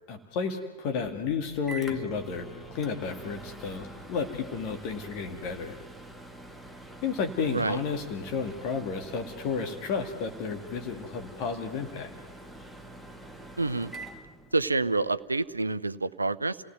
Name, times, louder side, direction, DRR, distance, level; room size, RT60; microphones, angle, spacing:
voice 1, 0.1-5.8 7.0-12.1, left 5 dB, 45° left, 5 dB, 2.2 m, -32 dB
Microwave oven, 1.0-15.0, right 2 dB, ahead, 1.7 m, -46 dB
voice 2, 7.4-7.8 13.6-13.9 14.5-16.7, right 3 dB, 80° right, 16 dB, 0.7 m, -28 dB
30.0 x 17.5 x 9.3 m, 1.4 s
figure-of-eight pair, 90°, 0 cm